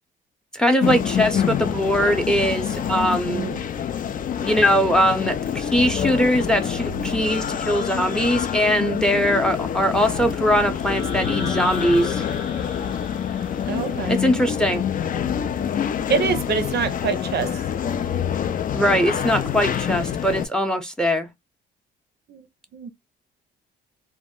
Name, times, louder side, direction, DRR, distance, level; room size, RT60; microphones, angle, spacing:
voice 1, 0.5-3.5 4.4-12.2 14.1-14.8 18.7-21.3, equal, 5° left, 0.6 m, -21 dB
sound 1, 0.8-20.5, left 8 dB, 45° left, 0.4 m, -26 dB
voice 2, 3.3-3.6 13.7-14.2 16.1-17.6 22.3-22.4 22.7-22.9, right 6 dB, 55° right, 0.5 m, -25 dB
sound 2, 10.8-14.8, left 4 dB, 85° left, 1.1 m, -36 dB
2.1 x 2.1 x 3.6 m
cardioid pair, 90°, 20 cm